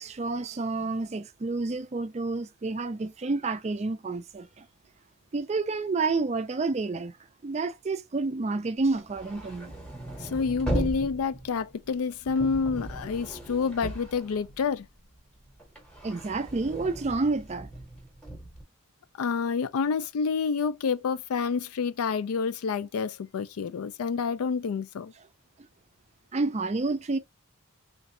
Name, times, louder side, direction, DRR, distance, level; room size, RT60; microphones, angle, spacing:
voice 1, 0.0-4.7 5.3-7.2 7.4-9.7 16.0-17.7 26.3-27.2, right 3 dB, 30° right, 0.4 m, -29 dB
sound 1, 8.9-15.0 15.3-18.6, right 1 dB, 5° left, 0.8 m, -37 dB
voice 2, 10.2-14.9 19.2-25.1, left 5 dB, 80° left, 0.4 m, -28 dB
3.2 x 2.6 x 2.7 m
head